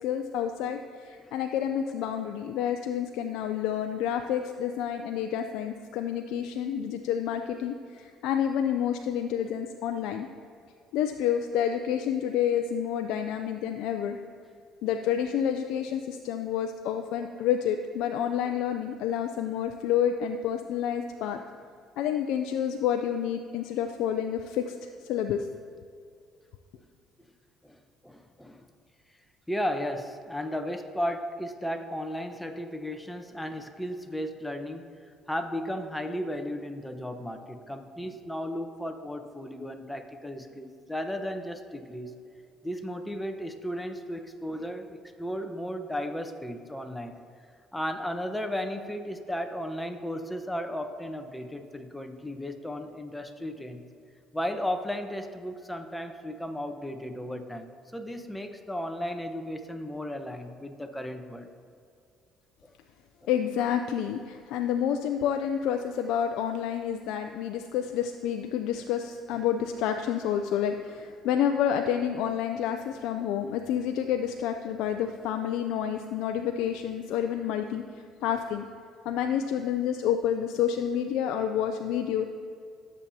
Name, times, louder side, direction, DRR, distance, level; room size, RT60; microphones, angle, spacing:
voice 1, 0.0-10.3 10.9-14.2 14.8-21.4 22.0-25.5 63.3-78.7 79.0-82.3, left 9 dB, 75° left, 5 dB, 0.4 m, -29 dB
voice 2, 27.6-28.6 29.5-34.9 35.3-42.1 42.6-47.2 47.7-53.8 54.3-61.5 62.6-62.7, equal, 5° left, 6 dB, 1.0 m, -35 dB
17.0 x 7.3 x 2.8 m, 2.3 s
supercardioid pair, 70°, 0 cm